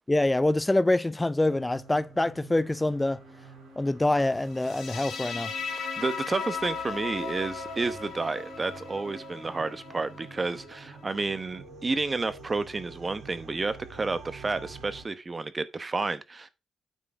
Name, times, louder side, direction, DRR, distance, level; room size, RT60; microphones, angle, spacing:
voice 1, 0.1-3.2 3.8-5.5, left 2 dB, 15° left, 0.3 m, -25 dB
sound 1, 1.5-15.0, right 3 dB, 85° right, 3.3 m, -47 dB
sound 2, 4.5-11.6, left 6 dB, 70° left, 2.7 m, -38 dB
voice 2, 5.7-16.5, right 3 dB, 35° right, 1.0 m, -31 dB
9.3 x 3.8 x 4.8 m
supercardioid pair, 60°, 0 cm